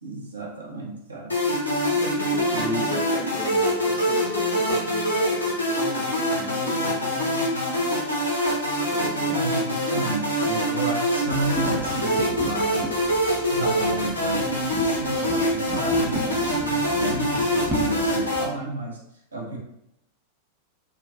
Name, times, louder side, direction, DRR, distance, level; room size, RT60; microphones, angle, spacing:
voice 1, 0.0-1.4 2.5-3.4 4.7-4.8 9.3-13.0 13.3-19.0 19.3-19.6, right 2 dB, 75° right, -2 dB, 0.6 m, -32 dB
sound 1, 1.3-18.4, equal, 80° left, 0.6 m, -24 dB
voice 2, 1.9-7.5 8.7-9.4 19.4-19.6, left 2 dB, 35° left, 1 dB, 0.5 m, -38 dB
sound 2, 11.3-18.5, right 1 dB, 15° right, 0.5 m, -36 dB
2.4 x 2.1 x 2.6 m, 0.80 s
figure-of-eight pair, 90°, 0 cm